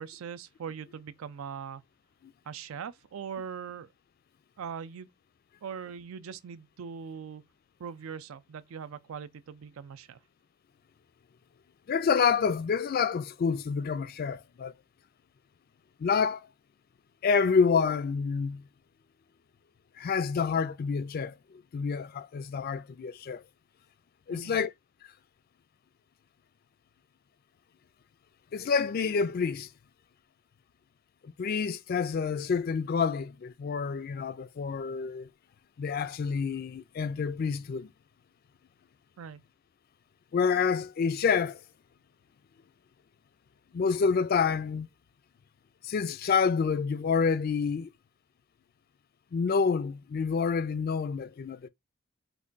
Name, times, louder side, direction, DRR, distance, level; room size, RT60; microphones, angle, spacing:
voice 1, 0.0-1.8 2.5-3.9 4.6-5.1 5.6-7.4 7.8-10.2 24.3-24.6 39.2-39.4, right 7 dB, 80° right, 0.4 m, -41 dB
voice 2, 11.9-14.7 16.0-16.4 17.2-18.6 20.0-21.4 21.7-23.4 24.3-24.7 28.5-29.7 31.2-35.3 35.8-37.9 40.3-41.6 43.7-44.9 45.8-47.9 49.3-51.7, left 5 dB, 45° left, 0.3 m, -28 dB
3.3 x 2.2 x 3.8 m
head